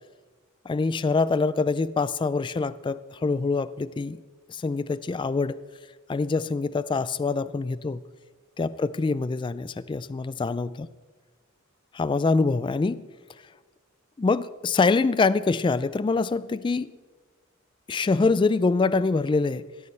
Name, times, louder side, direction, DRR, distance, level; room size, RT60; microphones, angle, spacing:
voice 1, 0.7-4.2 4.5-5.6 6.1-8.0 8.6-10.9 11.9-13.1 14.2-16.9 17.9-19.7, left 4 dB, 25° left, 16 dB, 0.3 m, -25 dB
18.0 x 14.0 x 3.3 m, 1.4 s
head